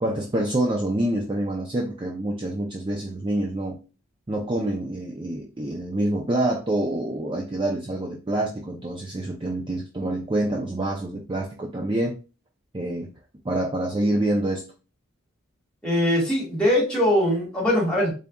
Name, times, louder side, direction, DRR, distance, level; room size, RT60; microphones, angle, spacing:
voice 1, 0.0-3.8 4.3-12.2 12.7-13.1 13.4-14.6, right 1 dB, 25° right, 0 dB, 0.4 m, -26 dB
voice 2, 15.8-18.1, left 1 dB, 5° left, -5 dB, 1.8 m, -21 dB
3.9 x 3.5 x 2.2 m, 0.33 s
head